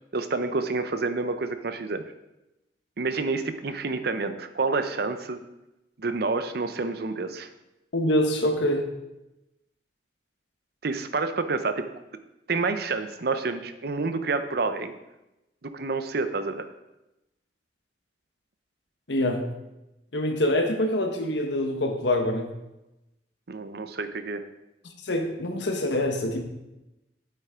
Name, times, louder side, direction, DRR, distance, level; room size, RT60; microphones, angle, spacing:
voice 1, 0.1-2.0 3.0-5.4 6.0-7.5 10.8-11.9 12.5-14.9 15.6-16.7 23.5-24.4, right 3 dB, 60° right, 10 dB, 0.7 m, -28 dB
voice 2, 7.9-8.9 19.1-19.4 20.1-22.5 25.0-26.4, left 1 dB, 80° left, 4 dB, 1.3 m, -25 dB
9.0 x 8.4 x 3.7 m, 0.95 s
head